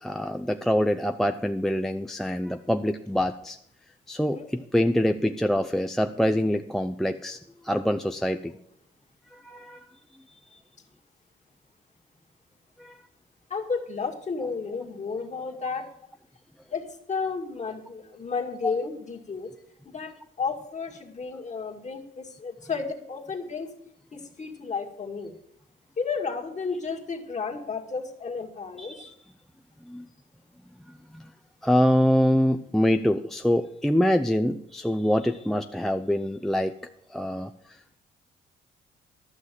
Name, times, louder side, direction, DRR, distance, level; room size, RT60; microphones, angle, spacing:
voice 1, 0.0-3.6 4.1-7.4 7.6-8.5 9.3-9.8 12.8-13.0 18.6-18.7 28.8-29.1 29.9-30.0 31.1-31.2 31.6-36.7 37.1-37.5, equal, ahead, 7 dB, 0.5 m, -25 dB
voice 2, 13.5-15.8 16.7-19.5 19.9-23.7 24.1-25.3 26.0-29.1, left 5 dB, 35° left, 3 dB, 1.9 m, -32 dB
12.0 x 6.5 x 7.5 m, 0.72 s
cardioid pair, 90°, 20 cm